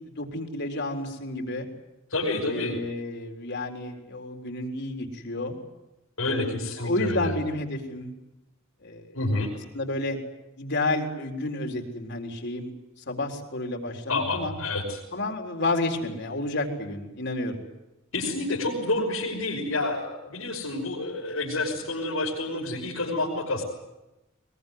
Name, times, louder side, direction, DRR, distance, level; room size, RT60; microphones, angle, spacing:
voice 1, 0.0-1.7 2.5-5.6 6.2-8.1 8.8-9.1 9.7-10.2 10.6-12.7 13.1-14.6 15.1-17.6, left 2 dB, 55° left, 4 dB, 4.1 m, -30 dB
voice 2, 2.1-2.7 6.2-7.3 9.1-9.5 14.1-15.0 18.1-23.6, left 2 dB, 80° left, -4 dB, 6.1 m, -29 dB
23.0 x 22.0 x 9.5 m, 0.98 s
head